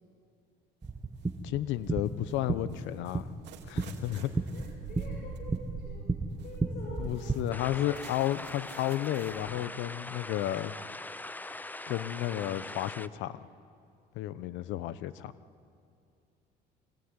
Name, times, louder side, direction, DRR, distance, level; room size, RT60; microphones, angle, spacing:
sound 1, 0.8-7.4, right 3 dB, 15° right, 1.6 m, -34 dB
sound 2, 0.8-1.4 1.8-9.6, right 6 dB, 65° right, 2.6 m, -46 dB
voice 1, 1.4-3.3 3.7-4.3 7.0-10.7 11.9-13.3 14.1-15.3, left 13 dB, 80° left, 15 dB, 1.0 m, -32 dB
voice 2, 4.1-6.1 6.4-7.9, left 3 dB, 50° left, -3 dB, 6.6 m, -47 dB
sound 3, 7.5-13.1, left 2 dB, 10° left, 0.6 m, -42 dB
24.5 x 19.5 x 9.8 m, 2.4 s
cardioid pair, 105°, 19 cm